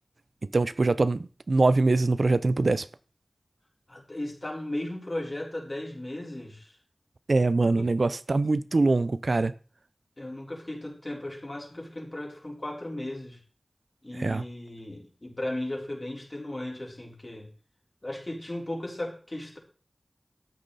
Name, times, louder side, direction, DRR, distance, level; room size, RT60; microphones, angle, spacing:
voice 1, 0.5-2.8 7.3-9.5 14.2-14.4, right 3 dB, 75° right, 0.6 m, -23 dB
voice 2, 3.9-6.7 7.8-7.9 10.2-13.4 14.0-17.5 18.0-19.6, left 1 dB, 40° left, 4.1 m, -36 dB
13.5 x 8.9 x 4.1 m
wide cardioid pair, 50°, 0 cm